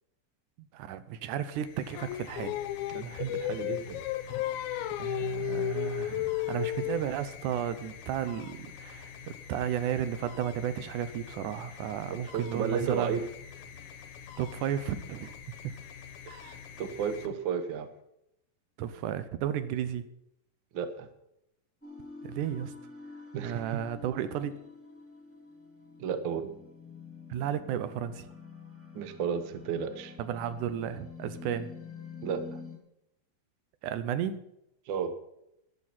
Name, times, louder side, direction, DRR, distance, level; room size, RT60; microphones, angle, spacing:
voice 1, 0.6-2.6 5.0-9.1 9.5-13.2 14.4-15.4 15.6-15.7 16.4-16.5 18.8-20.1 22.2-22.7 23.4-24.5 27.3-28.3 30.2-31.7 33.8-34.4, right 10 dB, 85° right, 13 dB, 2.3 m, -33 dB
sound 1, 1.4-17.9, left 7 dB, 60° left, 1.7 m, -47 dB
Singing, 1.9-7.1, left 14 dB, 80° left, 2.0 m, -33 dB
voice 2, 2.9-4.0 12.3-13.2 16.3-17.9 20.7-21.1 23.3-23.8 26.0-26.5 28.9-30.1 32.2-32.6 34.9-35.1, right 7 dB, 65° right, 10 dB, 1.2 m, -33 dB
sound 2, 21.8-32.8, left 4 dB, 5° left, 2.0 m, -47 dB
13.5 x 11.0 x 4.3 m, 0.81 s
omnidirectional pair, 3.5 m